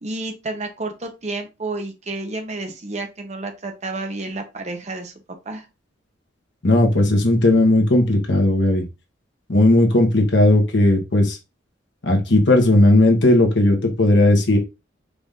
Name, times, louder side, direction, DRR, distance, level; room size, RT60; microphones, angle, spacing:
voice 1, 0.0-5.1 5.4-5.7, right 2 dB, 40° right, 5 dB, 0.8 m, -30 dB
voice 2, 6.6-8.8 9.5-11.4 12.0-14.6, left 1 dB, 65° left, 3 dB, 1.2 m, -16 dB
4.9 x 2.6 x 3.6 m, 0.26 s
head